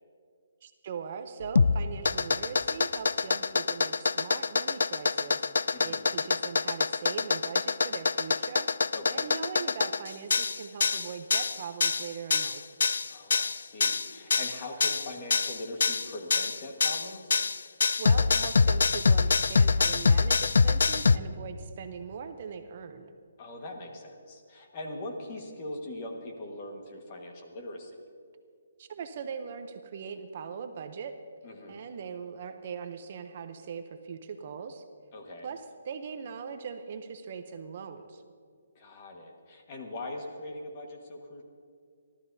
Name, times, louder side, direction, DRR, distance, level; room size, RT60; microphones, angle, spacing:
voice 1, 0.6-8.7 9.1-12.6 18.0-23.1 28.8-31.2 31.7-34.8 35.4-38.2, right 6 dB, 35° right, 7 dB, 0.6 m, -40 dB
sound 1, 1.4-21.2, left 4 dB, 75° left, 0.3 m, -25 dB
voice 2, 5.7-6.1 8.9-9.4 13.1-17.3 23.4-28.0 31.4-31.9 35.1-35.5 38.7-41.4, left 1 dB, 25° left, 2 dB, 1.5 m, -41 dB
27.5 x 13.0 x 2.7 m, 2.2 s
hypercardioid pair, 175°, 0 cm